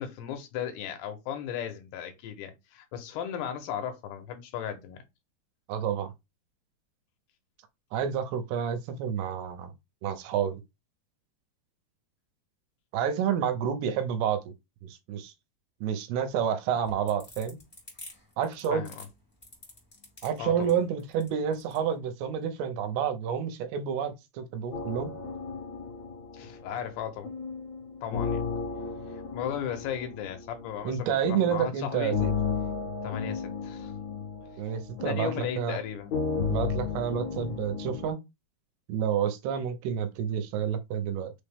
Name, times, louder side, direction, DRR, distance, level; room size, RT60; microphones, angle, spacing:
voice 1, 0.0-5.0 18.7-19.1 20.4-20.8 26.3-27.3 28.0-28.4 29.3-32.2 33.0-33.9 35.1-36.1, left 9 dB, 85° left, 2.9 m, -36 dB
voice 2, 5.7-6.1 7.9-9.7 10.0-10.6 12.9-14.5 14.8-15.3 15.8-17.6 18.4-18.9 20.2-25.2 30.8-32.3 34.6-35.8 36.5-38.2 38.9-41.3, right 8 dB, 80° right, 2.7 m, -29 dB
sound 1, 16.7-21.8, left 1 dB, 20° left, 1.0 m, -48 dB
sound 2, 24.7-38.1, left 5 dB, 60° left, 1.9 m, -34 dB
6.2 x 2.1 x 3.4 m
omnidirectional pair, 4.6 m